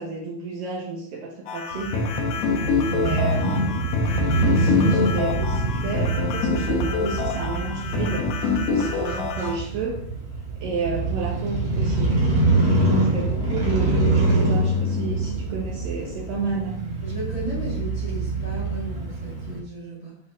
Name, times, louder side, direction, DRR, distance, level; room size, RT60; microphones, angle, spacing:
voice 1, 0.0-2.1 2.9-4.0 4.5-8.3 8.7-10.0 10.6-12.2 12.8-16.8, right 4 dB, 85° right, -3 dB, 1.9 m, -31 dB
sound 1, 1.5-9.6, left 5 dB, 85° left, 2.2 m, -26 dB
Crow / Motorcycle, 1.7-19.6, right 2 dB, 45° right, 1.6 m, -25 dB
voice 2, 2.4-2.8 17.0-20.2, equal, 40° left, -7 dB, 1.8 m, -35 dB
9.7 x 5.7 x 2.7 m, 0.64 s
omnidirectional pair, 5.8 m